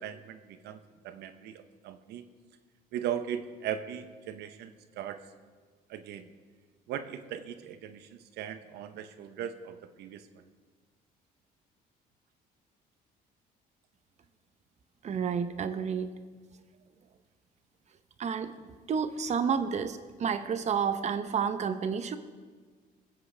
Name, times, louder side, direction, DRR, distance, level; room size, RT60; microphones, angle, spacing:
voice 1, 0.0-2.2 2.9-5.2 5.9-6.3 6.9-10.5, right 9 dB, 80° right, 10 dB, 0.8 m, -39 dB
voice 2, 15.0-16.1 18.2-22.2, right 6 dB, 40° right, 10 dB, 0.8 m, -30 dB
23.0 x 7.8 x 3.4 m, 1.5 s
cardioid pair, 110°, 17 cm